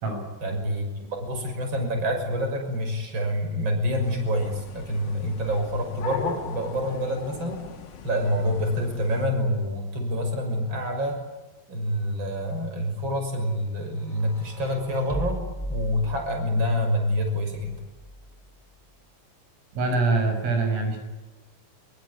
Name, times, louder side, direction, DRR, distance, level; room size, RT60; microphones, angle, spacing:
voice 1, 0.4-7.6 8.0-11.2 11.7-15.4 15.7-17.7, equal, 25° right, 5 dB, 6.4 m, -27 dB
sound 1, 4.0-9.3, left 6 dB, 55° left, 3.5 m, -39 dB
sound 2, 13.9-16.6 17.5-18.5, equal, 15° left, 1.6 m, -36 dB
voice 2, 19.7-21.0, right 3 dB, 85° right, 5 dB, 8.8 m, -24 dB
26.0 x 22.5 x 10.0 m, 1.2 s
omnidirectional pair, 5.7 m